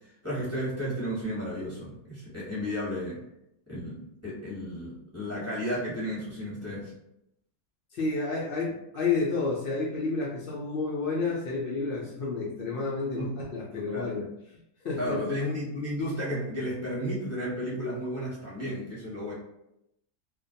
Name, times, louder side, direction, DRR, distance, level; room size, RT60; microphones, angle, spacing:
voice 1, 0.2-3.2 3.7-6.9 13.1-13.3 13.9-14.1 15.0-19.3, equal, 10° right, -9 dB, 0.9 m, -33 dB
voice 2, 7.9-14.2 14.8-15.2, left 4 dB, 90° left, -4 dB, 0.4 m, -30 dB
2.4 x 2.2 x 2.6 m, 0.82 s
omnidirectional pair, 1.5 m